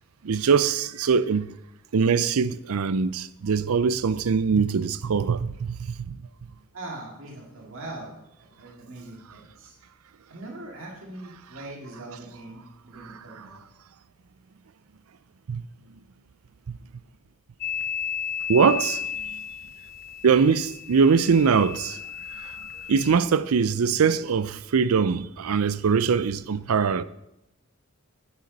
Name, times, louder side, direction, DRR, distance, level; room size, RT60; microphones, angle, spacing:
voice 1, 0.2-1.5 1.9-6.2 15.5-15.6 16.7-16.8 18.5-19.0 20.2-22.0 22.9-27.0, right 5 dB, 85° right, 0.5 m, -22 dB
voice 2, 6.7-8.1 8.4-9.8 10.3-13.6, right 2 dB, 65° right, 2.3 m, -41 dB
sound 1, 17.6-23.2, left 8 dB, 45° left, 0.4 m, -34 dB
9.5 x 9.2 x 5.3 m
head